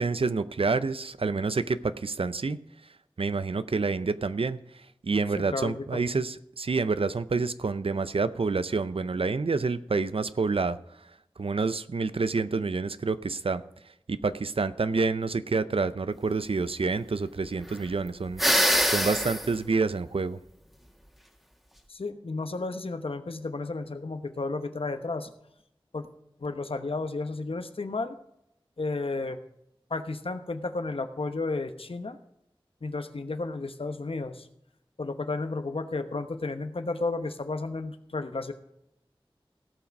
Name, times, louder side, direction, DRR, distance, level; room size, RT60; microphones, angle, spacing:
voice 1, 0.0-2.6 3.2-4.6 5.0-10.8 11.4-13.6 14.1-18.4 18.9-20.4, right 4 dB, 80° right, 14 dB, 0.6 m, -28 dB
voice 2, 5.3-6.2 21.9-25.3 25.9-26.1 26.4-28.2 28.8-29.4 29.9-32.2 32.8-34.5 35.0-38.5, left 3 dB, 75° left, 9 dB, 1.0 m, -32 dB
sound 1, 18.4-19.5, equal, ahead, 1.7 m, -23 dB
17.0 x 5.9 x 5.3 m, 0.79 s
wide cardioid pair, 50°, 9 cm